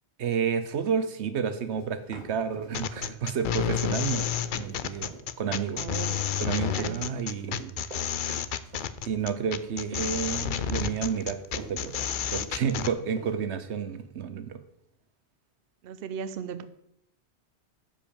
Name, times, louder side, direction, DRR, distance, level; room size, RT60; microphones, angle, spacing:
voice 1, 0.2-5.1 5.4-5.8 6.4-7.8 8.2-8.3 9.0-11.9 12.3-14.6, right 7 dB, 85° right, 11 dB, 1.2 m, -30 dB
Run, 1.7-3.1 3.4-13.3, right 2 dB, 40° right, 2.8 m, -45 dB
sound 1, 2.7-12.9, left 9 dB, 55° left, 0.7 m, -30 dB
voice 2, 5.7-6.3 6.7-7.0 15.8-16.6, right 7 dB, 65° right, 12 dB, 0.8 m, -36 dB
10.0 x 5.5 x 7.0 m, 0.78 s
omnidirectional pair, 1.1 m